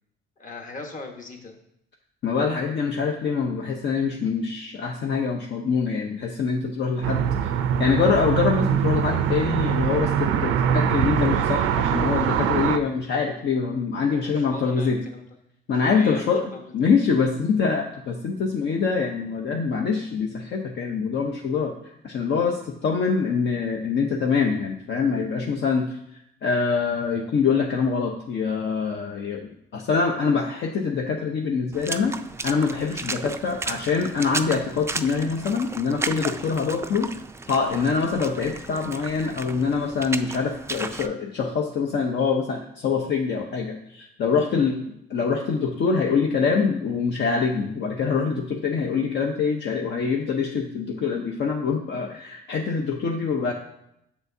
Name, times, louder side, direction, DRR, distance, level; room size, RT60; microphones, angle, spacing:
voice 1, 0.4-1.5 14.1-15.2 15.9-17.0 44.5-44.7, left 3 dB, 40° left, 2 dB, 1.3 m, -39 dB
voice 2, 2.2-7.5 7.8-15.0 15.7-16.4 16.7-21.7 22.0-25.9 26.4-32.2 32.4-37.1 37.5-44.8 45.1-53.5, left 5 dB, 65° left, 1 dB, 0.8 m, -24 dB
sound 1, 7.0-12.8, right 8 dB, 85° right, 0.5 m, -23 dB
Water / Splash splatter, 31.7-41.1, right 3 dB, 15° right, 0.3 m, -34 dB
6.9 x 6.7 x 2.7 m, 0.77 s
cardioid pair, 90°, 20 cm